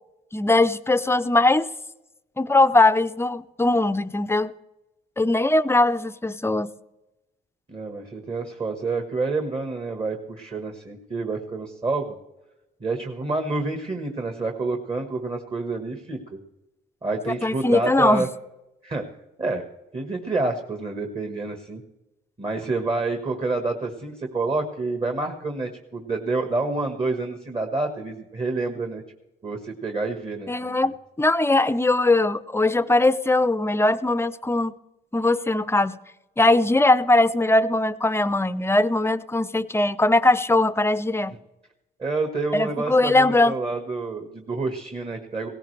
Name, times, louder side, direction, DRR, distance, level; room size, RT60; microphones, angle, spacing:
voice 1, 0.3-1.7 2.4-4.5 5.2-6.7 17.3-18.3 30.5-34.7 35.1-36.0 36.4-41.4 42.5-43.5, left 2 dB, 10° left, 13 dB, 0.6 m, -20 dB
voice 2, 7.7-12.1 12.8-16.4 17.0-18.3 18.8-19.0 19.4-19.6 19.9-21.8 22.4-29.0 29.4-30.9 42.0-45.5, right 3 dB, 30° right, 5 dB, 1.6 m, -28 dB
17.5 x 16.0 x 3.3 m, 0.95 s
cardioid pair, 90°, 20 cm